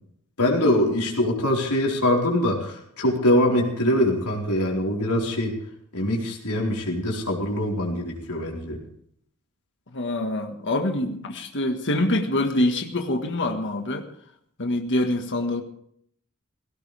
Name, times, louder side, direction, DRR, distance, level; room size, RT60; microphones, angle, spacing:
voice 1, 0.4-5.5 5.9-8.8, left 1 dB, 90° left, -1 dB, 4.5 m, -23 dB
voice 2, 9.9-14.1 14.6-15.6, left 1 dB, 55° left, 5 dB, 1.7 m, -25 dB
18.0 x 17.5 x 3.5 m, 0.66 s
head